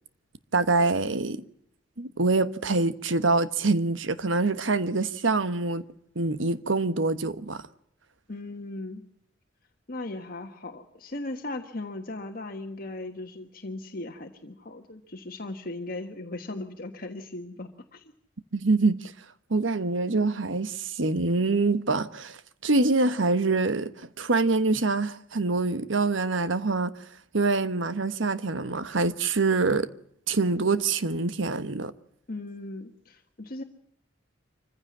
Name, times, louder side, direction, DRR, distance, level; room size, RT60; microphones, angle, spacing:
voice 1, 0.5-1.4 2.0-5.8 6.1-7.6 18.5-19.1 19.5-26.9 27.3-29.9 30.3-31.9, right 3 dB, 80° right, 1.2 m, -25 dB
voice 2, 8.3-9.0 9.9-18.1 32.3-33.6, left 2 dB, 50° left, 1.5 m, -38 dB
25.0 x 15.5 x 7.3 m
head